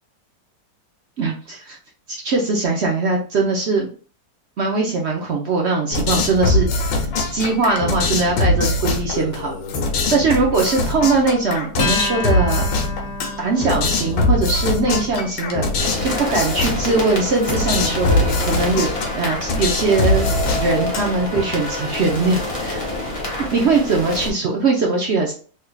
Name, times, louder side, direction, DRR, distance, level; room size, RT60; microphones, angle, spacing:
voice 1, 1.2-1.8 2.1-3.9 4.6-7.0 7.3-9.6 10.1-12.6 13.4-15.7 16.0-18.9 19.1-20.3 20.6-22.9 23.5-25.3, right 3 dB, 75° right, 0 dB, 0.6 m, -21 dB
sound 1, 5.9-21.4, left 2 dB, 75° left, 1.5 m, -22 dB
Acoustic guitar, 11.8-18.6, left 3 dB, 45° left, 1.2 m, -32 dB
sound 2, 15.8-24.3, left 2 dB, 25° left, 0.9 m, -27 dB
3.6 x 3.2 x 2.3 m, 0.40 s
omnidirectional pair, 2.0 m